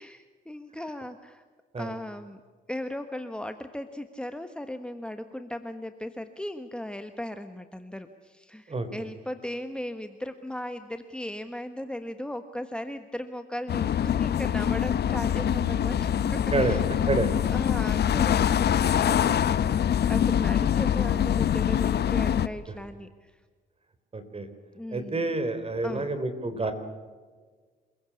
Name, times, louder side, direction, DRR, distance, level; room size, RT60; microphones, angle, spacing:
voice 1, 0.0-1.4 1.8-2.4 2.7-16.8 17.5-19.2 19.5-23.4 24.7-25.3 25.8-26.1, left 1 dB, 5° left, 7 dB, 1.4 m, -37 dB
voice 2, 8.7-9.1 16.5-16.8 17.1-17.3 19.0-19.2 24.1-24.5 24.9-26.7, right 3 dB, 30° right, 10 dB, 3.7 m, -28 dB
sound 1, 13.7-22.5, left 9 dB, 55° left, 0.9 m, -24 dB
27.5 x 16.0 x 8.5 m, 1.5 s
cardioid pair, 90°, 20 cm